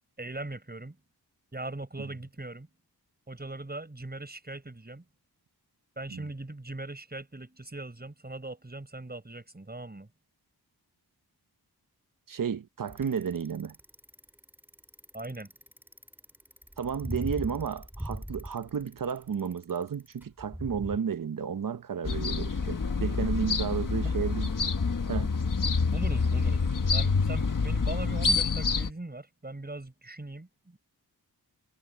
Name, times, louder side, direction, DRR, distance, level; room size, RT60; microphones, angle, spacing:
voice 1, 0.2-1.0 1.5-2.7 3.3-5.0 6.0-10.1 15.1-15.5 24.0-24.1 25.9-26.6 26.9-30.8, right 2 dB, 25° right, 6.2 m, -40 dB
voice 2, 12.3-13.7 16.8-24.5 25.1-25.3, right 7 dB, 55° right, 0.9 m, -32 dB
Bicycle, 12.9-21.0, equal, 5° right, 4.0 m, -40 dB
ambiente parque chico rotonda, 22.1-28.9, left 4 dB, 55° left, 1.7 m, -27 dB
wide cardioid pair, 105°, 39 cm